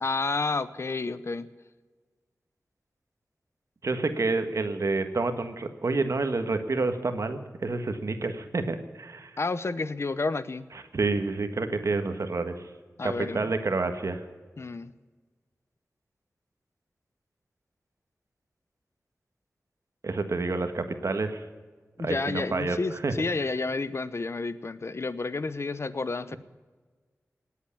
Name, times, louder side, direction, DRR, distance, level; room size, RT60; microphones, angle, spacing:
voice 1, 0.0-1.5 9.4-10.7 13.0-13.4 14.6-14.9 22.0-26.4, left 3 dB, 55° left, 15 dB, 0.8 m, -30 dB
voice 2, 3.8-9.3 10.7-12.7 13.0-14.2 20.0-21.4 22.0-22.8 23.0-23.1, right 3 dB, 70° right, 8 dB, 1.4 m, -29 dB
19.0 x 8.4 x 8.3 m, 1.4 s
wide cardioid pair, 70°, 6 cm